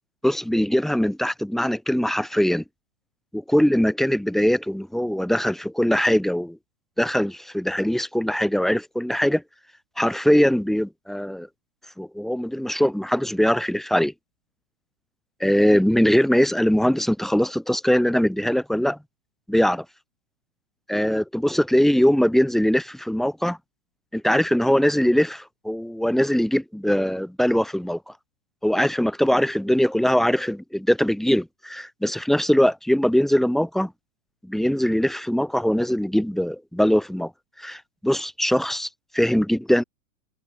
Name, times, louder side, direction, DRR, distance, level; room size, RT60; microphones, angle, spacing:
voice 1, 0.2-2.6 3.3-6.6 7.0-9.4 10.0-11.5 12.0-14.1 15.4-19.0 19.5-19.8 20.9-23.6 24.1-28.0 28.6-33.9 34.4-37.3 37.6-39.8, equal, ahead, 6.4 m, -21 dB
hypercardioid pair, 145°, 39 cm